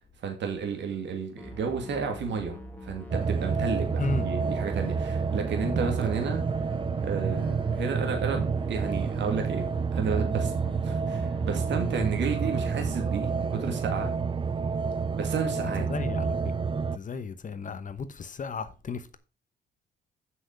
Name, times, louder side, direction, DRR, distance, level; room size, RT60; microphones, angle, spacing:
voice 1, 0.2-6.4 7.0-14.1 15.2-15.9, right 5 dB, 65° right, 2.3 m, -32 dB
sound 1, 1.4-12.9, equal, 10° left, 2.0 m, -44 dB
sound 2, 3.1-17.0, right 5 dB, 25° right, 0.5 m, -29 dB
voice 2, 15.9-16.3 16.9-19.2, left 4 dB, 40° left, 1.0 m, -34 dB
7.7 x 6.3 x 5.2 m
cardioid pair, 90°, 20 cm